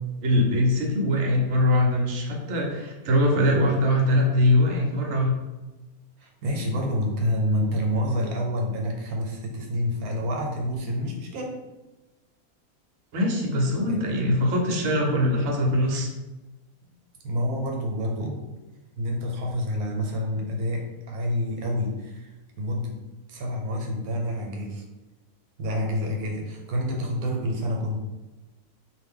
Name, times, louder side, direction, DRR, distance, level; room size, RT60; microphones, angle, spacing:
voice 1, 0.2-5.3 13.1-16.1, left 1 dB, 60° right, 0 dB, 0.8 m, -22 dB
voice 2, 6.2-11.6 13.9-14.2 17.2-18.4 19.0-22.3 22.6-23.0 23.3-24.8 25.6-28.0, left 1 dB, 85° right, 1 dB, 1.1 m, -28 dB
2.5 x 2.1 x 3.5 m, 1.1 s
omnidirectional pair, 1.6 m